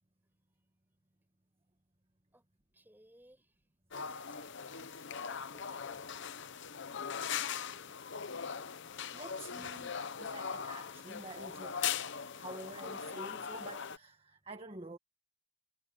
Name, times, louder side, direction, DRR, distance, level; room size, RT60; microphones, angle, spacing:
voice 1, 2.7-3.5 4.1-6.3, right 1 dB, 10° right, 6.5 m, -63 dB
sound 1, 3.9-14.0, left 7 dB, 55° left, 0.8 m, -40 dB
voice 2, 8.2-8.6 9.1-11.9 12.3-15.0, right 2 dB, 25° right, 1.5 m, -49 dB
head